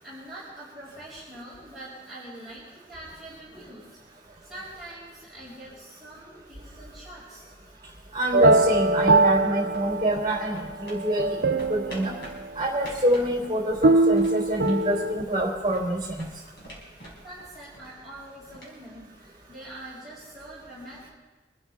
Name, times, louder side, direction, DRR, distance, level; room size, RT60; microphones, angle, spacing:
voice 1, 0.0-4.0 4.4-7.4 17.2-21.1, right 1 dB, ahead, -11 dB, 6.0 m, -44 dB
voice 2, 8.1-12.1 12.6-16.3, right 1 dB, 20° right, -1 dB, 3.7 m, -26 dB
sound 1, 8.3-10.5 11.0-12.1 13.8-15.2, right 2 dB, 65° right, 0.6 m, -21 dB
sound 2, 9.7-19.7, equal, 60° left, 5.1 m, -48 dB
26.0 x 13.0 x 3.5 m, 1.2 s
head